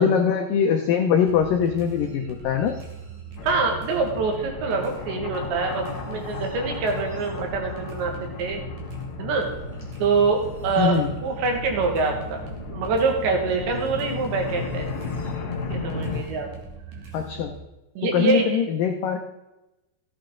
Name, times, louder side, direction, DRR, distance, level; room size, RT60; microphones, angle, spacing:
voice 1, 0.0-2.7 10.8-11.1 17.1-17.5 18.1-19.2, left 7 dB, 85° left, 4 dB, 1.9 m, -22 dB
sound 1, 1.3-17.6, right 6 dB, 55° right, 3.2 m, -41 dB
sound 2, 3.4-16.2, left 4 dB, 55° left, 1.2 m, -34 dB
voice 2, 3.4-8.6 9.2-9.5 10.0-11.0 11.2-12.4 12.7-14.9 15.7-16.5 18.0-18.5, right 4 dB, 90° right, 2 dB, 4.1 m, -25 dB
14.5 x 8.7 x 3.8 m, 0.97 s
omnidirectional pair, 5.0 m